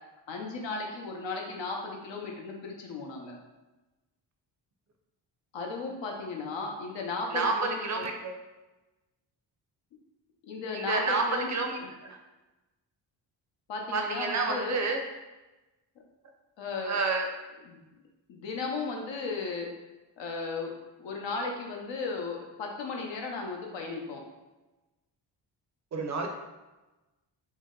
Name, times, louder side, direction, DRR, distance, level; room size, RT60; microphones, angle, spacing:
voice 1, 0.3-3.3 5.5-8.1 10.5-11.0 11.3-11.6 13.7-14.8 16.6-17.0 17.7-17.8 18.3-19.7 20.2-20.7 21.0-24.2, left 4 dB, 75° left, 0 dB, 0.7 m, -35 dB
voice 2, 7.3-8.3 10.7-12.2 13.9-15.0 16.9-17.3 25.9-26.3, right 3 dB, 40° right, 3 dB, 0.5 m, -29 dB
2.7 x 2.1 x 3.6 m, 1.1 s
cardioid pair, 75°, 45 cm